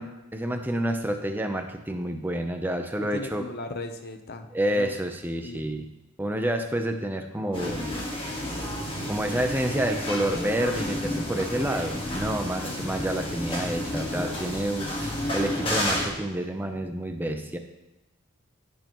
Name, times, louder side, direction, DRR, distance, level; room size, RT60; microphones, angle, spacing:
voice 1, 0.0-3.4 4.5-5.9 6.2-7.8 9.1-17.6, right 1 dB, 10° right, 5 dB, 0.7 m, -29 dB
voice 2, 3.1-4.9 5.4-5.8 12.7-12.9, left 2 dB, 45° left, 7 dB, 0.8 m, -37 dB
sound 1, 7.5-16.1, left 1 dB, 25° left, 1.6 m, -31 dB
16.0 x 6.7 x 3.1 m, 0.98 s
head